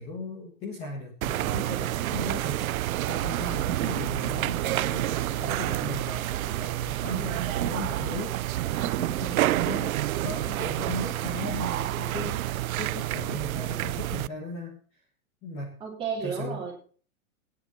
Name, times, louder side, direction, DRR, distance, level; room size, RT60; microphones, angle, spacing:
voice 1, 0.0-12.4 12.7-14.8 15.4-15.8 16.2-16.6, left 2 dB, 15° left, 0 dB, 1.6 m, -37 dB
sound 1, 1.2-14.3, right 14 dB, 80° right, 0.5 m, -29 dB
voice 2, 8.7-9.2 15.8-16.7, right 6 dB, 15° right, -3 dB, 3.5 m, -34 dB
19.0 x 9.9 x 4.3 m, 0.44 s
hypercardioid pair, 180°, 42 cm